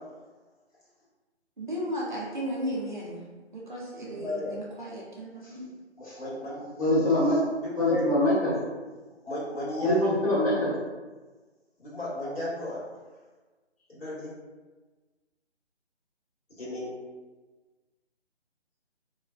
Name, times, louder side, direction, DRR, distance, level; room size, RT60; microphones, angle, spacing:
voice 1, 1.6-3.2 3.5-5.6, equal, 45° right, -5 dB, 0.5 m, -35 dB
voice 2, 4.1-4.5 6.0-6.9 7.6-8.0 9.2-10.3 11.8-12.8 13.9-14.3 16.6-16.9, left 2 dB, 60° left, -8 dB, 1.4 m, -34 dB
voice 3, 6.8-7.5 7.8-8.6 9.8-10.8, left 1 dB, 30° left, -11 dB, 1.1 m, -24 dB
2.4 x 2.2 x 2.2 m, 1.3 s
figure-of-eight pair, 150°, 35 cm